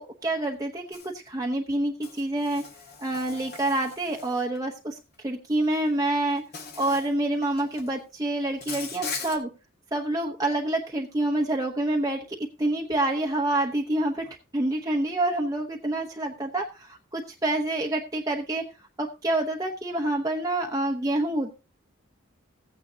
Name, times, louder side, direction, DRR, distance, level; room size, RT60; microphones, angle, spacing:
voice 1, 0.0-2.6 3.0-5.0 5.2-6.4 6.8-9.5 9.9-18.6 19.0-21.5, right 1 dB, 15° right, 1 dB, 0.9 m, -27 dB
Insect, 0.9-1.1 2.0-4.6 5.7-5.9 6.5-7.1 7.4-7.9 8.6-9.4, left 5 dB, 50° left, 1.9 m, -39 dB
15.5 x 9.3 x 2.8 m, 0.29 s
head